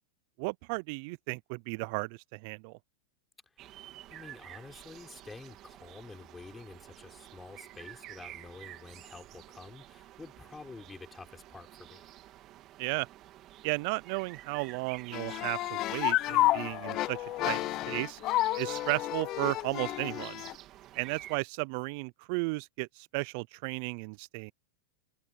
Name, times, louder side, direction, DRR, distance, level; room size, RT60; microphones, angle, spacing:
voice 1, 0.4-2.8 12.8-13.1 13.6-18.2 18.6-20.4 21.0-24.5, right 29 dB, 50° right, 0.4 m, -34 dB
sound 1, 3.6-21.4, right 14 dB, 35° right, 2.3 m, -51 dB
voice 2, 4.1-12.1, left 4 dB, 10° left, 6.3 m, -49 dB
sound 2, 15.1-20.5, left 16 dB, 35° left, 0.6 m, -30 dB
supercardioid pair, 140°, 0 cm